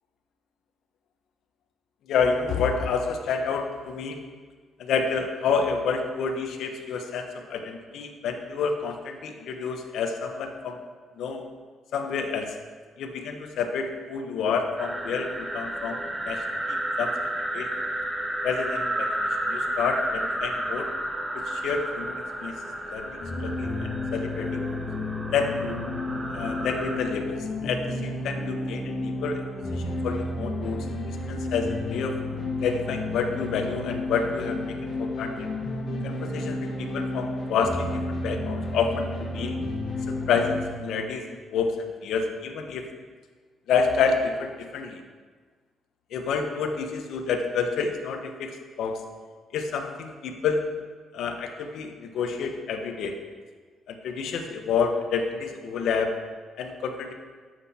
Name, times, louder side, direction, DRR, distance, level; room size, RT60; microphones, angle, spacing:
voice 1, 2.1-4.2 4.8-10.8 11.1-11.4 11.9-12.6 13.0-17.1 17.5-17.7 18.4-20.9 21.3-22.5 22.9-24.6 25.3-25.5 26.3-32.2 32.6-35.3 36.0-39.6 40.1-42.9 43.7-45.0 46.1-49.0 49.5-50.6 51.1-53.2 53.9-56.2 56.6-57.1, left 5 dB, 75° left, 5 dB, 1.1 m, -29 dB
sound 1, 14.8-27.0, right 1 dB, 15° right, 1.1 m, -32 dB
sound 2, 23.2-40.6, left 2 dB, 55° left, 2.5 m, -31 dB
9.8 x 7.9 x 4.3 m, 1.5 s
cardioid pair, 90°, 0 cm